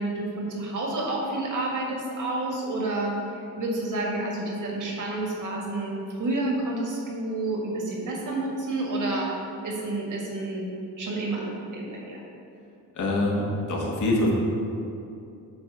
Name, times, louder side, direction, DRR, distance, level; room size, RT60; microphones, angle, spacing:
voice 1, 0.0-9.3 9.6-10.7 11.0-12.2, right 2 dB, 55° right, -2 dB, 1.9 m, -29 dB
voice 2, 12.9-14.3, left 1 dB, 55° left, -3 dB, 1.7 m, -24 dB
8.7 x 3.6 x 6.1 m, 2.7 s
cardioid pair, 125°, 36 cm